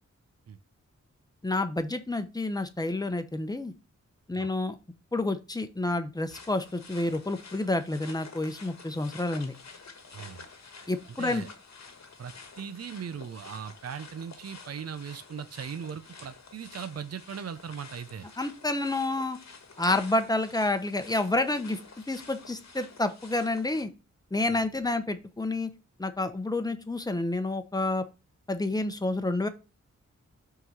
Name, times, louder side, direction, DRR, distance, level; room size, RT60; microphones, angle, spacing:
voice 1, 1.4-3.7 4.3-4.8 5.1-9.5 10.9-11.4 18.4-19.4 19.8-21.8 22.1-23.9 24.3-25.7 26.0-28.0 28.5-29.5, left 2 dB, 15° left, 0.9 m, -29 dB
sound 1, 6.3-23.8, left 4 dB, 65° left, 1.3 m, -49 dB
voice 2, 10.1-10.4 11.1-11.5 12.2-18.3 24.5-24.6, right 7 dB, 55° right, 0.6 m, -39 dB
5.5 x 3.9 x 5.5 m
wide cardioid pair, 70°, 30 cm